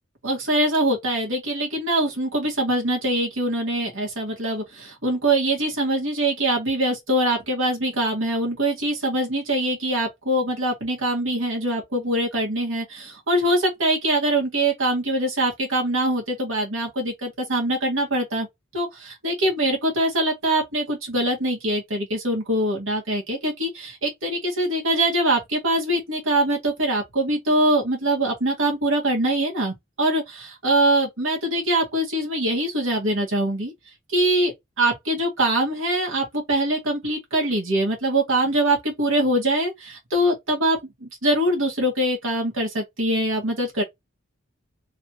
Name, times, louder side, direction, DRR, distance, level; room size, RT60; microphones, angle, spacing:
voice 1, 0.2-18.5 18.7-33.7 34.1-43.8, right 1 dB, 75° right, 2.0 m, -23 dB
3.6 x 3.3 x 2.9 m
head